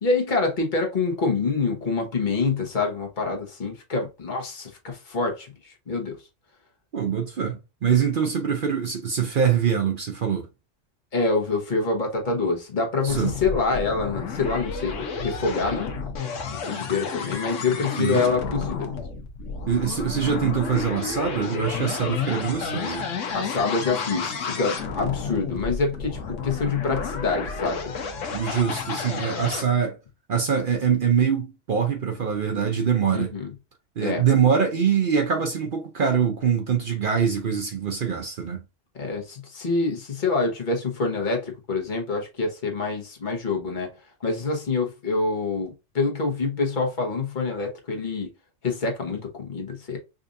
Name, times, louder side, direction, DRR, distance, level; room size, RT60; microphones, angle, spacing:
voice 1, 0.0-6.2 11.1-15.9 16.7-18.9 23.3-27.9 33.1-33.5 34.0-34.3 38.9-43.9 44.2-48.3 48.6-50.0, left 4 dB, 40° left, 1.1 m, -26 dB
voice 2, 6.9-10.5 13.0-13.3 18.0-18.2 19.7-23.1 28.3-30.0 30.3-33.3 34.0-38.6, right 7 dB, 55° right, 0.7 m, -24 dB
sound 1, 13.1-29.6, left 5 dB, 80° left, 1.1 m, -31 dB
5.0 x 2.5 x 2.6 m
omnidirectional pair, 1.3 m